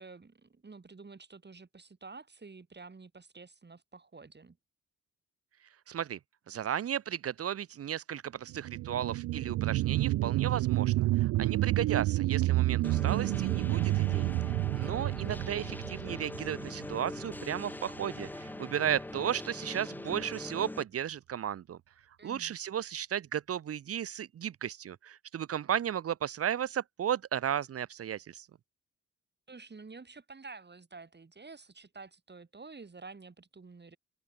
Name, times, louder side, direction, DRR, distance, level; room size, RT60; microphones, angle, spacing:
voice 1, 0.0-4.6 11.6-11.7 22.2-22.5 29.5-34.0, right 4 dB, 35° right, 7.3 m, -50 dB
voice 2, 5.9-6.2 6.5-14.3 14.7-21.8 22.2-28.5, right 9 dB, 50° right, 0.8 m, -34 dB
sound 1, 8.5-17.6 18.0-18.1, right 17 dB, 70° right, 0.5 m, -29 dB
sound 2, 12.8-20.8, left 1 dB, 5° left, 0.5 m, -42 dB
open air
supercardioid pair, 60°, 30 cm